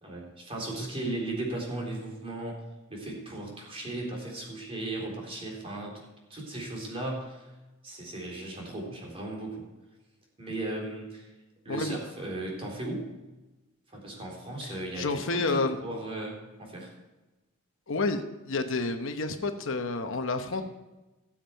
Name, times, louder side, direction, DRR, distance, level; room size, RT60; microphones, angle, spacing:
voice 1, 0.0-2.6 2.9-6.0 6.3-7.5 7.8-9.6 10.4-11.2 11.7-13.1 13.9-16.9, right 2 dB, 25° right, -1 dB, 3.8 m, -36 dB
voice 2, 14.6-15.8 17.9-20.6, left 3 dB, 65° left, 7 dB, 1.0 m, -30 dB
18.0 x 7.4 x 4.6 m, 1.1 s
head